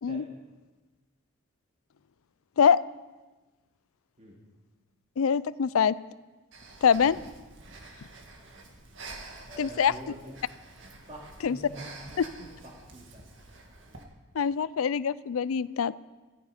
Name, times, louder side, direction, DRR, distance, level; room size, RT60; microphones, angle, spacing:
voice 1, 5.2-6.0 6.8-7.2 9.6-9.9 11.4-11.6 14.3-15.9, left 7 dB, 85° left, 18 dB, 0.4 m, -24 dB
Breathing, 6.5-14.0, right 3 dB, 65° right, 1.9 m, -48 dB
voice 2, 9.5-10.3 11.1-13.2 13.9-14.0, right 1 dB, 30° right, -2 dB, 2.5 m, -45 dB
15.0 x 14.5 x 5.1 m, 1.2 s
head